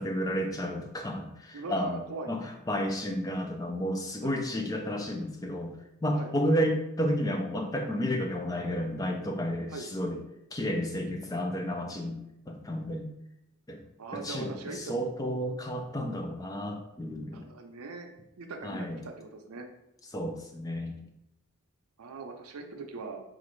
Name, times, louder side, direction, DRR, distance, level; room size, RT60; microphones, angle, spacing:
voice 1, 0.0-2.0 2.3-5.7 6.0-10.2 10.5-12.2 12.5-13.1 13.7-13.8 14.1-17.4 18.6-19.0 20.1-21.0, equal, 15° left, 4 dB, 0.3 m, -31 dB
voice 2, 1.5-2.3 4.2-4.4 6.2-6.3 9.7-9.9 14.0-15.0 17.3-18.1 18.4-19.7 22.0-23.2, right 4 dB, 80° right, 4 dB, 0.6 m, -40 dB
4.9 x 2.5 x 3.1 m, 0.85 s
head